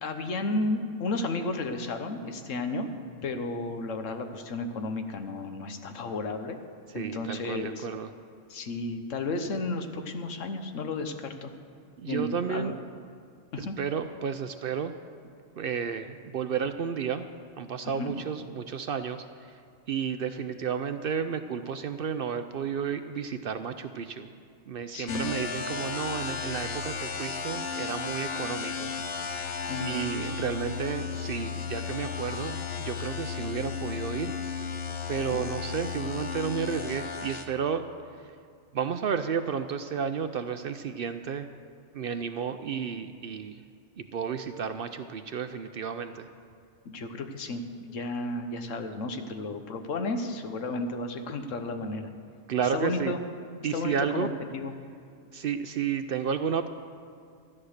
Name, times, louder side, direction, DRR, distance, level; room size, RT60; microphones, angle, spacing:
voice 1, 0.0-2.9 3.2-6.6 6.9-7.9 8.5-11.5 12.0-12.8 13.5-13.8 17.8-18.1 24.9-25.3 29.7-30.0 35.3-35.4 46.8-52.1 52.6-53.2 53.7-54.7, left 2 dB, 85° left, 7 dB, 1.3 m, -33 dB
voice 2, 6.9-8.1 12.0-12.7 13.6-14.9 15.6-17.3 17.6-19.5 19.9-24.3 24.7-28.9 29.8-34.3 35.1-37.8 38.7-41.5 41.9-43.6 44.0-46.3 52.5-53.2 53.6-54.3 55.3-56.7, right 7 dB, 60° right, 9 dB, 0.6 m, -32 dB
sound 1, 25.1-37.5, left 5 dB, 60° left, 1.0 m, -34 dB
13.0 x 9.8 x 6.5 m, 2.3 s
omnidirectional pair, 1.3 m